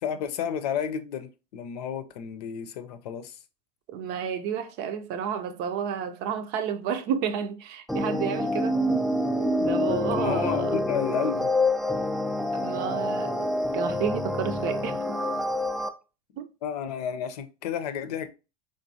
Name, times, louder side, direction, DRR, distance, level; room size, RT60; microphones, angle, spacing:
voice 1, 0.0-3.4 10.1-11.5 16.6-18.3, left 8 dB, 75° left, 0.6 m, -31 dB
voice 2, 3.9-8.8 9.5-10.7 12.5-13.5 13.7-15.2 16.4-16.5, right 7 dB, 50° right, 0.6 m, -31 dB
sound 1, 7.9-15.9, left 1 dB, ahead, 0.4 m, -27 dB
3.9 x 3.4 x 2.7 m
hypercardioid pair, 100°, 21 cm